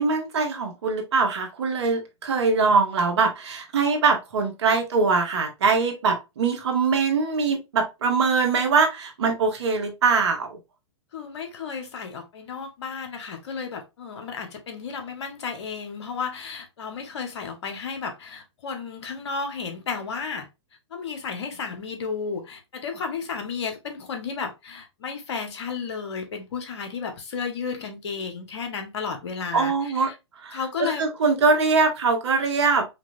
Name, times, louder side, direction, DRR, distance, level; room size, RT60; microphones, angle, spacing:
voice 1, 0.0-10.5 29.5-30.1 30.4-32.9, right 4 dB, 70° right, 1.6 m, -22 dB
voice 2, 11.1-20.5 20.9-30.1 30.5-31.0, left 5 dB, 70° left, 1.5 m, -33 dB
5.1 x 3.1 x 2.6 m
hypercardioid pair, 120°, 15 cm